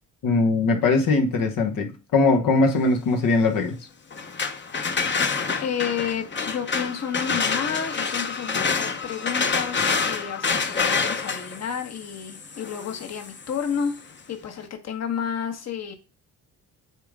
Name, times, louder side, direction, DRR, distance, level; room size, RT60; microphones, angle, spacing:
voice 1, 0.2-3.8, left 3 dB, 70° left, 1.3 m, -21 dB
sound 1, 4.1-13.9, left 5 dB, 30° left, 0.9 m, -27 dB
voice 2, 5.6-15.9, left 7 dB, 50° left, 1.3 m, -31 dB
8.9 x 3.7 x 3.6 m
cardioid pair, 105°, 35 cm